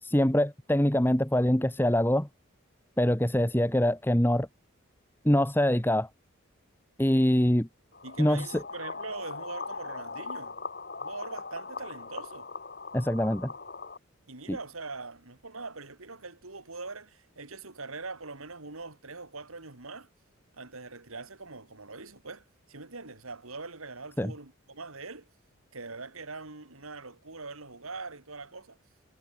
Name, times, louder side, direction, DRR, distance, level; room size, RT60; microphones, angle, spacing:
voice 1, 0.0-2.3 3.0-4.5 5.2-6.1 7.0-7.7 8.2-8.6 12.9-13.5 14.5-14.6 24.2-24.3, left 1 dB, 10° left, 1.3 m, -24 dB
sound 1, 7.9-14.0, left 4 dB, 45° left, 2.7 m, -40 dB
voice 2, 8.0-10.6 11.0-12.5 14.3-20.1 20.5-25.3 25.7-28.8, right 3 dB, 80° right, 3.2 m, -42 dB
head